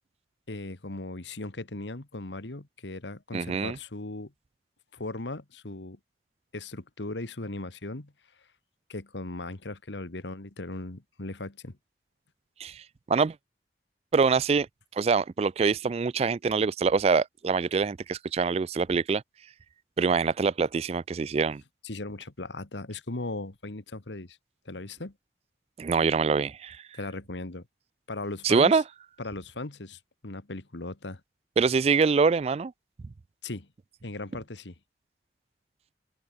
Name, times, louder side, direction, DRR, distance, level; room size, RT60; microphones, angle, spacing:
voice 1, 0.5-4.3 4.9-6.0 6.5-8.1 8.9-11.8 21.8-24.4 24.6-25.1 26.9-27.7 28.1-28.8 29.2-31.2 33.4-33.7 34.0-34.7, left 2 dB, 85° left, 1.6 m, -38 dB
voice 2, 3.3-3.8 12.6-12.8 13.1-13.3 14.1-14.7 15.0-19.2 20.0-21.6 25.8-26.8 28.4-28.8 31.6-32.7, right 5 dB, 35° right, 0.3 m, -24 dB
head